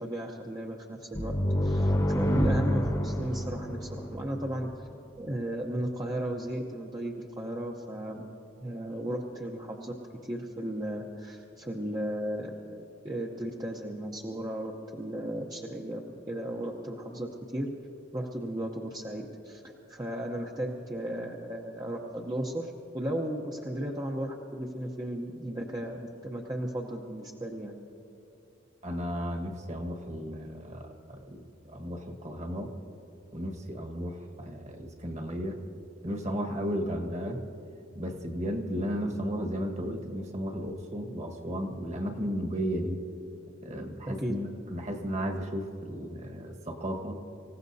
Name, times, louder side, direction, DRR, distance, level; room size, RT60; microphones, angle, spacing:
voice 1, 0.0-1.3 1.6-4.7 5.2-8.2 8.6-9.9 10.2-17.7 18.1-27.7 44.2-44.4, right 1 dB, 20° right, -1 dB, 0.8 m, -35 dB
sound 1, 1.1-4.7, equal, 20° left, 1.0 m, -28 dB
voice 2, 28.8-32.7 33.3-35.6 36.0-37.4 37.9-43.0 43.6-47.2, equal, 35° right, 3 dB, 1.5 m, -34 dB
26.0 x 16.0 x 2.7 m, 2.9 s
head